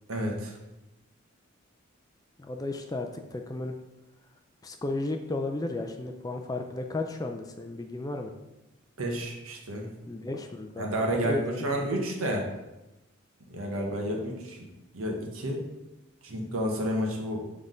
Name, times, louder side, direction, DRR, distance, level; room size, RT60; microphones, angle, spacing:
voice 1, 0.1-0.6 9.0-9.9 10.8-12.4 13.5-14.7 14.9-15.6 16.2-17.4, equal, 80° right, 0 dB, 1.2 m, -30 dB
voice 2, 2.4-3.8 4.6-8.3 10.1-12.0, left 2 dB, 15° left, 4 dB, 0.4 m, -34 dB
7.4 x 3.6 x 3.8 m, 1.0 s
head